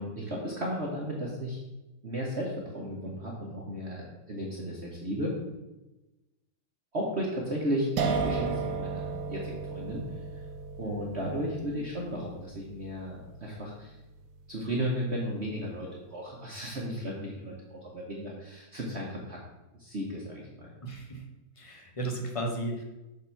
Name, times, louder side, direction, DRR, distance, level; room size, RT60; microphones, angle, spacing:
voice 1, 0.0-1.6 2.0-5.3 6.9-10.0 10.8-13.9 14.5-19.4 19.8-20.7, equal, 40° right, -3 dB, 1.3 m, -34 dB
sound 1, 8.0-14.9, right 5 dB, 65° right, 1.2 m, -35 dB
voice 2, 20.8-21.2 21.6-22.8, right 1 dB, 25° left, 2 dB, 0.7 m, -34 dB
6.6 x 4.4 x 5.7 m, 1.0 s
omnidirectional pair, 2.1 m